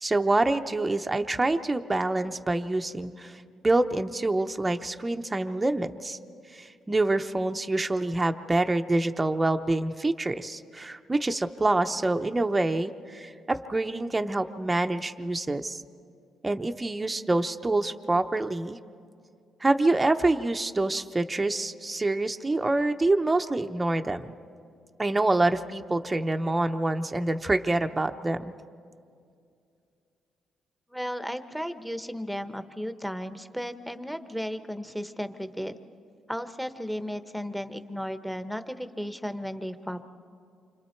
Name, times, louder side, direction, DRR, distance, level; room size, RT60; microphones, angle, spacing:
voice 1, 0.0-6.2 6.5-15.8 16.4-18.8 19.6-24.3 25.0-28.5, right 2 dB, 20° right, 6 dB, 0.8 m, -26 dB
voice 2, 30.9-35.7 36.3-40.0, equal, ahead, 10 dB, 1.1 m, -34 dB
28.5 x 25.5 x 4.5 m, 2.4 s
cardioid pair, 90°, 0 cm